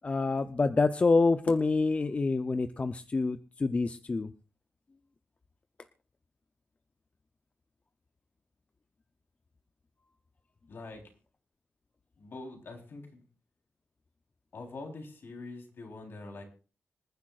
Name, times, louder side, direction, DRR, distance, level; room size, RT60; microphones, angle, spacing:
voice 1, 0.0-4.3, left 3 dB, 30° left, 10 dB, 0.5 m, -27 dB
voice 2, 10.7-11.0 12.2-13.2 14.5-16.4, left 3 dB, 60° left, 2 dB, 3.6 m, -44 dB
26.0 x 10.0 x 2.4 m, 0.35 s
wide cardioid pair, 135°, 4 cm